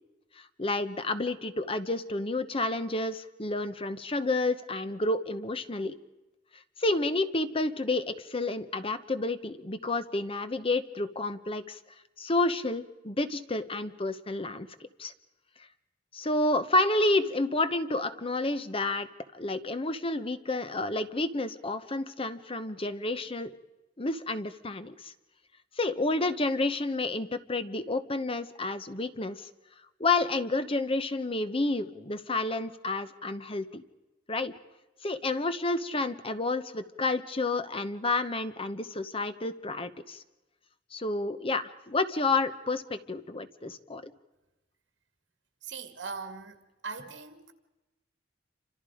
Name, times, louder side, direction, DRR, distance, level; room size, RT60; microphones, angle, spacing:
voice 1, 0.4-6.0 6.8-11.8 12.2-14.7 15.0-15.1 16.1-19.1 19.3-23.5 24.0-25.1 25.8-29.5 30.0-33.8 34.3-34.5 35.0-40.2 40.9-44.1, left 2 dB, 30° left, 1.0 m, -30 dB
voice 2, 45.6-46.6 46.8-47.5, right 4 dB, 75° right, 2.3 m, -40 dB
28.5 x 26.0 x 5.0 m
head